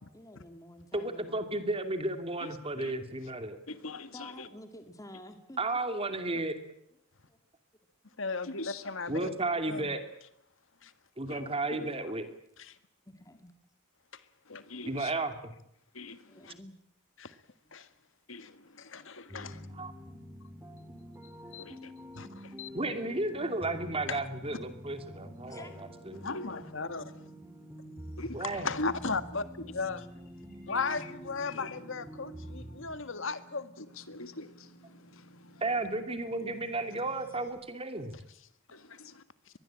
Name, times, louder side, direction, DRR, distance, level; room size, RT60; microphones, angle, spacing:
voice 1, 0.0-1.5 4.1-5.6 7.3-7.4 8.1-8.2 8.7-8.8 13.1-13.5 16.3-16.8 18.6-18.7 19.2-19.3 25.5-25.7, left 1 dB, 15° left, 2.2 m, -50 dB
voice 2, 0.9-3.6 5.6-6.6 9.1-10.0 11.2-12.3 14.8-15.5 19.7-19.9 22.7-26.2 28.3-28.7 35.6-38.1, right 2 dB, 25° right, 2.7 m, -33 dB
voice 3, 3.7-4.5 8.4-8.9 11.3-11.4 11.7-12.0 14.5-15.1 15.9-16.5 18.3-19.6 21.6-21.9 22.4-22.5 25.5-25.6 26.1-26.7 28.2-28.4 28.8-28.9 31.5-31.8 33.8-35.6 38.7-39.2, left 2 dB, 80° left, 1.9 m, -43 dB
voice 4, 8.2-9.3 9.7-10.0 17.7-17.8 18.9-19.5 21.5-21.6 22.2-22.3 22.6-22.7 24.1-24.2 26.2-27.0 28.4-29.4 29.7-30.0 30.7-33.6, left 4 dB, 65° left, 1.8 m, -35 dB
sound 1, 19.3-33.0, equal, 10° right, 2.1 m, -47 dB
sound 2, 22.7-37.5, equal, 45° left, 5.7 m, -58 dB
24.0 x 21.0 x 8.8 m
head